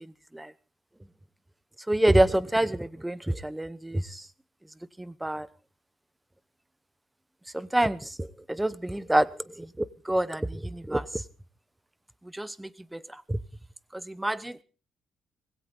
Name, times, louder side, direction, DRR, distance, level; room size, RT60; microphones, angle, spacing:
voice 1, 1.9-4.2 5.0-5.5 7.5-9.3 9.6-11.2 12.3-13.0 13.3-13.4 13.9-14.6, right 1 dB, 10° right, 18 dB, 0.8 m, -27 dB
20.0 x 16.5 x 3.7 m, 0.36 s
cardioid pair, 90°, 0 cm